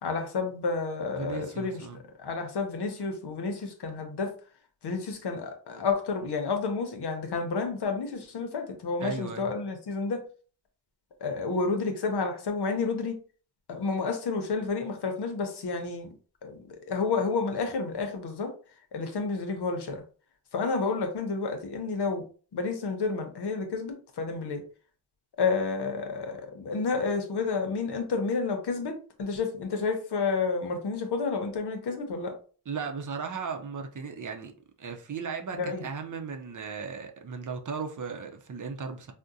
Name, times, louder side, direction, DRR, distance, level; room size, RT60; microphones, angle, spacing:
voice 1, 0.0-1.8 2.2-4.3 4.8-10.2 11.2-13.2 13.7-16.1 16.4-18.5 18.9-20.0 20.5-22.2 22.5-24.6 25.4-32.3 35.5-35.8, left 4 dB, 85° left, 0.7 m, -30 dB
voice 2, 1.1-2.0 9.0-9.5 32.7-34.5 34.8-39.1, right 5 dB, 50° right, 0.6 m, -36 dB
3.6 x 2.1 x 2.6 m
wide cardioid pair, 65°, 39 cm